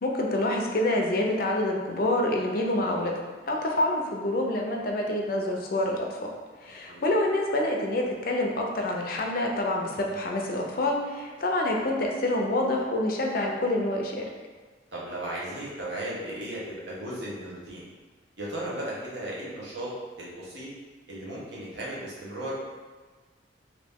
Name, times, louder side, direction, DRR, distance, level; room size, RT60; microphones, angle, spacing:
voice 1, 0.0-3.2 3.5-6.2 6.6-14.2, left 1 dB, 55° left, 0 dB, 0.5 m, -27 dB
voice 2, 14.9-17.8 18.4-20.7 21.1-22.5, right 1 dB, 75° right, -6 dB, 1.0 m, -36 dB
3.0 x 2.6 x 3.5 m, 1.4 s
head